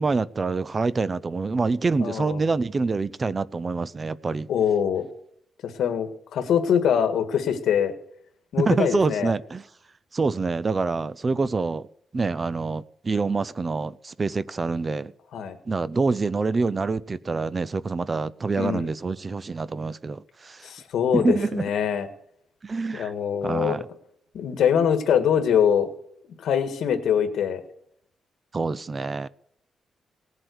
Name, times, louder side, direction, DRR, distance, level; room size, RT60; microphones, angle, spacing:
voice 1, 0.0-4.5 8.6-9.6 10.1-11.9 12.1-15.1 15.7-20.7 21.1-21.6 22.6-23.1 23.4-23.8 28.5-29.3, right 4 dB, 25° right, 0.4 m, -26 dB
voice 2, 2.0-2.4 4.5-5.1 5.6-7.9 8.5-9.3 15.3-15.6 18.6-18.9 20.6-22.1 22.9-23.8 24.3-25.9 26.4-27.6, left 8 dB, 80° left, 1.8 m, -23 dB
18.5 x 7.8 x 6.3 m
wide cardioid pair, 155°, 0 cm